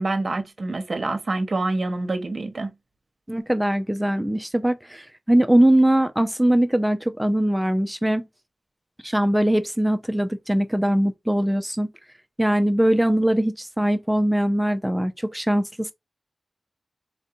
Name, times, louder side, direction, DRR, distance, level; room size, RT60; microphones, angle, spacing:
voice 1, 0.0-2.7, right 2 dB, 55° right, 0.9 m, -26 dB
voice 2, 3.3-8.3 9.0-11.9 12.4-15.9, right 1 dB, 5° right, 0.5 m, -21 dB
4.3 x 2.6 x 2.6 m
wide cardioid pair, 75°, 0 cm